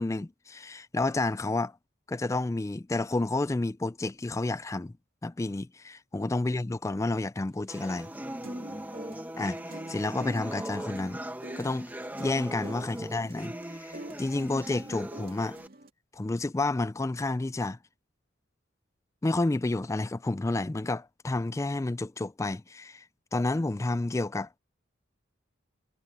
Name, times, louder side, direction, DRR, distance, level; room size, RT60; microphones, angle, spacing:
voice 1, 0.0-1.7 2.1-4.9 5.2-8.1 9.4-11.2 11.6-11.9 12.2-15.6 16.1-17.8 19.2-23.0 23.3-24.5, left 2 dB, 15° left, 0.3 m, -30 dB
sound 1, 7.7-15.7, right 1 dB, 10° right, 1.2 m, -39 dB
sound 2, 7.8-15.9, right 1 dB, 50° right, 2.4 m, -48 dB
head